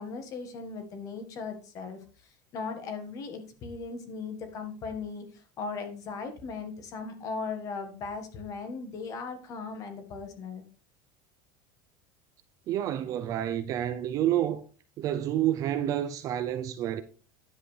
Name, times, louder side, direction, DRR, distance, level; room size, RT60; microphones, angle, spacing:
voice 1, 0.0-10.6, left 4 dB, 30° left, 1.6 m, -38 dB
voice 2, 12.7-14.6 15.0-17.0, right 11 dB, 35° right, 0.5 m, -29 dB
10.0 x 7.5 x 3.3 m
cardioid pair, 170°, 11 cm